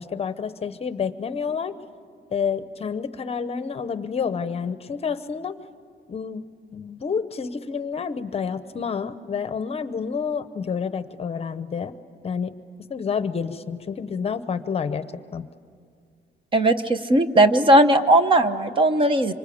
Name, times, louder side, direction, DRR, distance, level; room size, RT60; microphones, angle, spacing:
voice 1, 0.0-1.7 2.3-5.6 6.1-6.5 6.7-11.9 12.2-12.5 12.9-15.5, left 6 dB, 30° left, 12 dB, 0.8 m, -29 dB
voice 2, 16.5-19.3, right 1 dB, 25° right, 9 dB, 0.9 m, -18 dB
26.0 x 25.5 x 8.6 m, 2.2 s
cardioid pair, 170°, 19 cm